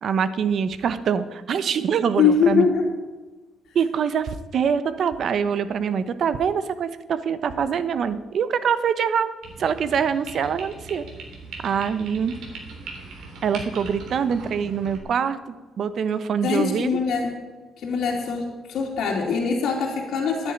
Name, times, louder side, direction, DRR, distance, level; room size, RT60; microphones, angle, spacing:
voice 1, 0.0-2.7 3.7-9.3 9.6-11.0 11.6-12.3 13.4-15.4 15.8-16.9, right 7 dB, 60° right, 13 dB, 1.0 m, -24 dB
voice 2, 2.2-2.9 16.4-17.3 17.8-20.5, left 5 dB, 75° left, -2 dB, 2.6 m, -22 dB
sound 1, 9.4-15.0, right 3 dB, 80° right, 3.6 m, -40 dB
10.0 x 10.0 x 9.3 m, 1.3 s
cardioid pair, 90°, 0 cm